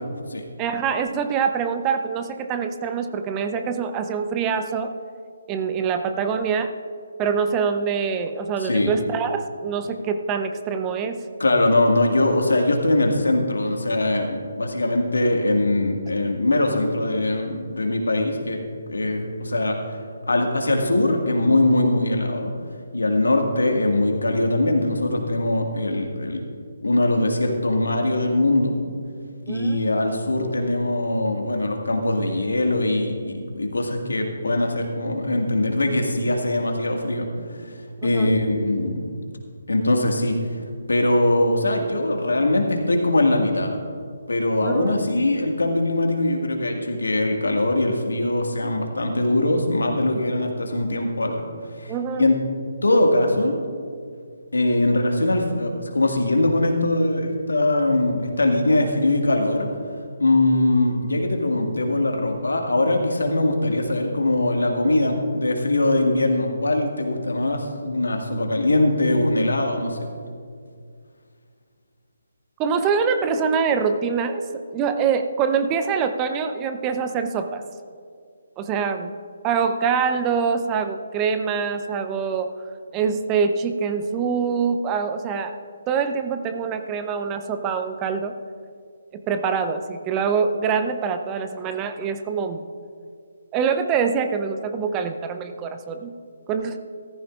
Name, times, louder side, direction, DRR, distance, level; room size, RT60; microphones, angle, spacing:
voice 1, 0.6-4.9 5.5-6.7 7.2-11.2 29.5-29.8 38.0-38.3 44.6-45.0 51.9-52.3 72.6-77.6 78.6-79.1 79.4-82.5 82.9-85.6 85.9-88.3 89.3-92.6 93.5-96.1 96.5-96.8, right 6 dB, 20° right, 8 dB, 0.6 m, -24 dB
voice 2, 8.6-8.9 11.4-18.6 18.9-19.8 20.3-22.5 22.9-26.4 26.8-28.8 29.5-37.8 38.0-39.0 39.7-40.4 40.9-43.7 44.3-51.4 51.8-52.3 52.8-53.6 54.5-59.7 60.2-70.1, left 2 dB, 75° left, 3 dB, 1.8 m, -21 dB
14.5 x 14.5 x 2.5 m, 2.2 s
figure-of-eight pair, 145°, 0 cm